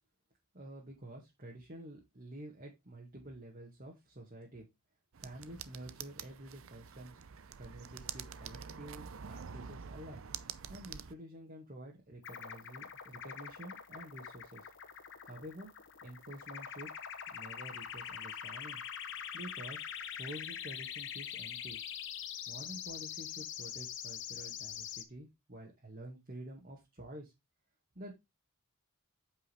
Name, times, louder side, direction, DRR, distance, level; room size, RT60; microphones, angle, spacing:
voice 1, 0.5-4.7 5.2-7.2 7.6-10.2 10.7-14.7 15.2-15.7 16.0-16.9 17.3-18.8 19.3-21.8 22.5-27.3 28.0-28.1, right 1 dB, 40° right, -3 dB, 2.1 m, -49 dB
sound 1, 5.1-11.1, right 7 dB, 65° right, 0.6 m, -47 dB
sound 2, 12.2-25.0, left 8 dB, 55° left, 1.1 m, -44 dB
8.5 x 5.5 x 3.5 m, 0.21 s
head